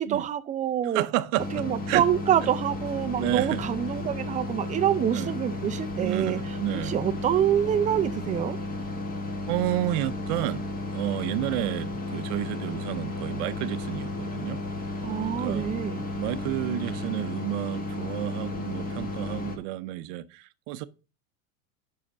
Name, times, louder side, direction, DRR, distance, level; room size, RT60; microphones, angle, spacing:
voice 1, 0.0-1.1 1.5-6.4 6.8-8.6 15.0-16.0, right 10 dB, 20° right, 0.4 m, -26 dB
voice 2, 0.9-2.0 3.2-3.6 5.1-5.3 6.0-7.0 9.5-14.6 15.2-15.7 16.1-20.9, right 15 dB, 55° right, 0.7 m, -31 dB
sound 1, 1.4-19.6, left 2 dB, 20° left, 1.5 m, -33 dB
5.8 x 5.0 x 6.0 m
supercardioid pair, 115°, 44 cm